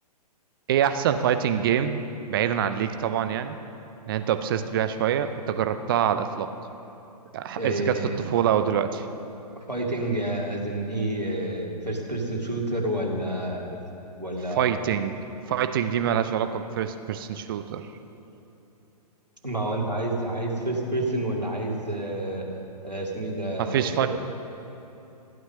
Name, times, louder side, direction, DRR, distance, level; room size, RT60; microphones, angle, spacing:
voice 1, 0.7-2.0 2.3-3.6 4.1-6.5 7.3-9.1 14.6-15.2 15.5-17.9 23.6-24.1, right 9 dB, 35° right, 9 dB, 0.6 m, -25 dB
voice 2, 7.6-8.2 9.7-13.8 14.2-14.8 19.4-22.4 22.8-24.1, right 1 dB, 90° right, -1 dB, 2.3 m, -29 dB
14.5 x 9.2 x 6.6 m, 3.0 s
figure-of-eight pair, 120°, 21 cm